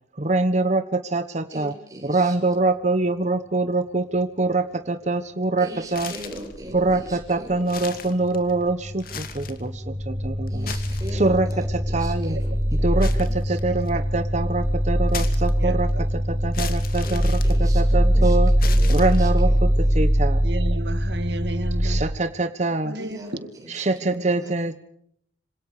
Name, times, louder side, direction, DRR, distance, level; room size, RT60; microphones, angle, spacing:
voice 1, 0.2-1.7 2.0-6.1 6.7-9.7 10.1-10.7 11.1-12.4 12.8-15.9 16.3-18.5 18.9-20.4 21.8-22.9 23.7-24.8, right 2 dB, 40° right, 9 dB, 1.3 m, -24 dB
voice 2, 1.5-2.3 5.6-7.6 10.5-11.7 12.0-12.8 17.0-17.8 18.1-18.4 18.6-19.5 23.0-23.8 24.2-24.3, right 1 dB, 20° right, 0 dB, 7.4 m, -39 dB
sound 1, 5.9-6.6 7.1-7.2 7.6-8.6 9.0-9.7 10.5-11.5 13.0-14.0 15.1-15.9 16.5-18.1 18.6-19.5, left 7 dB, 55° left, 2.5 m, -37 dB
sound 2, 6.4-7.9 8.2-22.0, equal, 20° left, 5.0 m, -22 dB
voice 3, 13.5-13.9 15.6-15.8 17.9-18.3 20.4-22.0 22.8-23.2 24.0-24.2, right 2 dB, 70° right, 10 dB, 2.2 m, -33 dB
26.5 x 26.5 x 5.0 m, 0.68 s
head